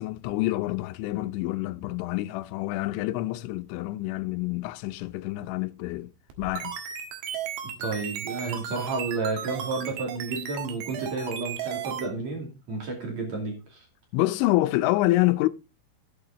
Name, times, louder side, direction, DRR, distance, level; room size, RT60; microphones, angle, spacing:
voice 1, 0.0-6.1 6.4-6.8 14.1-15.5, left 17 dB, 85° left, 3.1 m, -27 dB
sound 1, 6.3-12.1, right 9 dB, 80° right, 4.0 m, -35 dB
voice 2, 7.8-13.9, right 3 dB, 40° right, 3.4 m, -31 dB
11.5 x 8.7 x 3.9 m
omnidirectional pair, 5.3 m